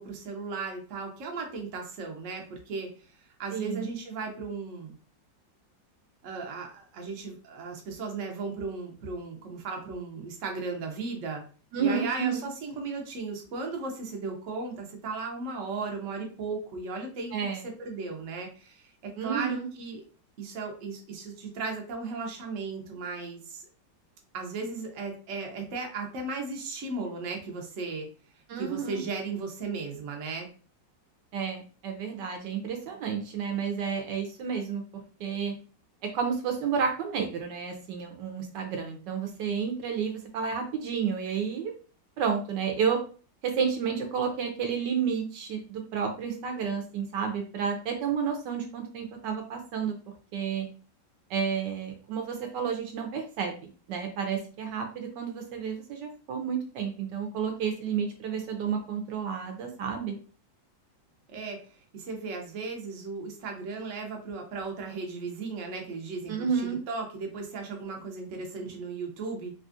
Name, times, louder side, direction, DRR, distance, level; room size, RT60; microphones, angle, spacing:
voice 1, 0.0-2.9 3.4-5.0 6.2-11.4 11.8-17.4 17.6-20.0 20.4-23.6 24.3-28.1 28.6-30.5 61.3-69.5, right 4 dB, 60° right, 2 dB, 0.8 m, -36 dB
voice 2, 3.5-3.9 11.7-12.5 17.3-17.6 19.2-19.7 28.5-29.0 31.3-34.8 35.2-35.5 36.1-41.7 42.2-43.0 43.4-49.9 50.3-50.7 51.3-60.2 66.3-66.8, right 6 dB, 75° right, 4 dB, 1.1 m, -31 dB
3.2 x 2.4 x 2.5 m, 0.38 s
omnidirectional pair, 2.0 m